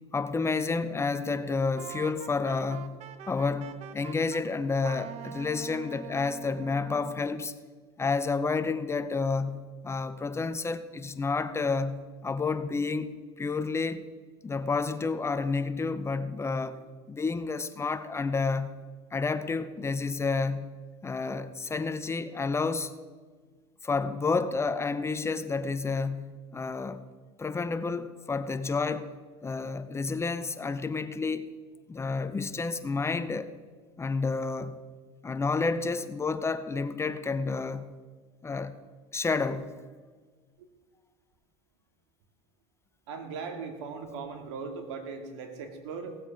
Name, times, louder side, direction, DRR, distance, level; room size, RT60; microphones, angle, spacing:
voice 1, 0.1-3.0 3.3-7.5 8.0-14.1 14.4-16.8 17.1-18.8 19.1-22.9 23.8-27.0 27.4-29.1 29.4-31.5 31.9-33.5 34.0-34.8 35.2-38.0 38.4-38.8 39.1-39.8, left 4 dB, 20° left, 0.7 m, -30 dB
Wind instrument woodwind instrument, 1.8-4.4 4.8-7.2, right 8 dB, 50° right, 1.0 m, -44 dB
voice 2, 43.1-46.2, right 5 dB, 80° right, 2.3 m, -38 dB
17.0 x 8.0 x 5.8 m
supercardioid pair, 105°, 14 cm